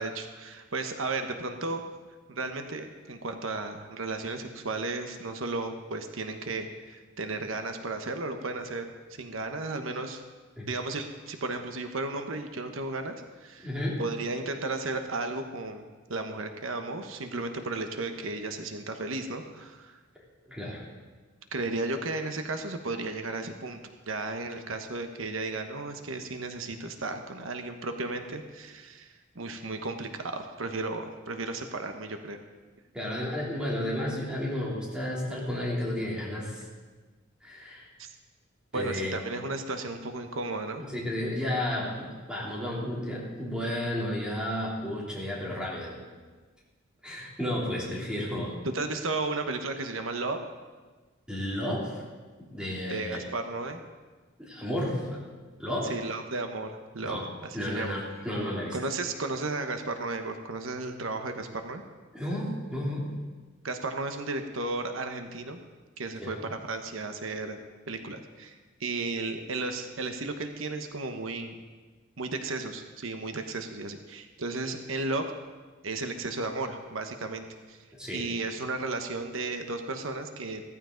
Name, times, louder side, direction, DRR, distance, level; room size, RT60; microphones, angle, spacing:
voice 1, 0.0-1.8 2.3-10.2 10.7-13.7 14.0-20.0 21.5-23.8 24.1-32.4 38.0-38.1 38.7-40.8 48.7-50.4 52.9-53.8 55.8-57.9 58.7-61.8 63.6-65.6 66.0-67.6 67.9-68.5 68.8-71.5 72.2-75.2 75.8-77.8 78.1-80.6, right 3 dB, 85° right, 6 dB, 1.1 m, -34 dB
voice 2, 13.6-14.0 20.5-20.8 32.9-36.6 37.4-37.9 38.7-39.2 40.9-46.0 47.0-48.6 51.3-52.0 52.4-53.2 54.4-55.2 55.6-56.0 57.0-57.3 57.5-58.8 62.1-63.1 66.2-66.4 77.9-78.3, left 1 dB, 5° right, -5 dB, 3.1 m, -32 dB
15.5 x 14.5 x 3.9 m, 1.3 s
head